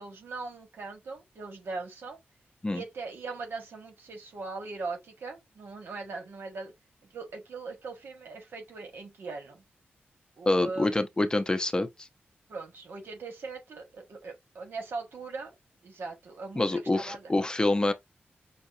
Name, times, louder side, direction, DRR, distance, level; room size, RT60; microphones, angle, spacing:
voice 1, 0.0-2.2 2.7-6.7 7.1-9.6 10.4-11.0 12.5-15.5 15.8-17.3, right 3 dB, 85° right, 1.4 m, -40 dB
voice 2, 10.5-11.9 16.6-17.9, left 2 dB, 20° left, 0.7 m, -26 dB
5.7 x 2.5 x 2.6 m
wide cardioid pair, 90°, 4 cm